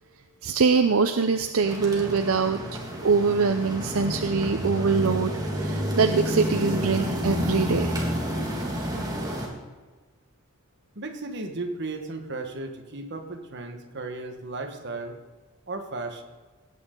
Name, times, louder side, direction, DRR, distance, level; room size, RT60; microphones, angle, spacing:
voice 1, 0.4-2.6 3.0-5.3 5.6-7.9, right 4 dB, 70° right, 7 dB, 0.6 m, -23 dB
sound 1, 1.6-9.5, equal, 15° right, 1.9 m, -29 dB
voice 2, 10.9-15.2 15.7-16.2, right 2 dB, 55° right, 5 dB, 1.4 m, -35 dB
18.0 x 8.7 x 3.8 m, 1.3 s
head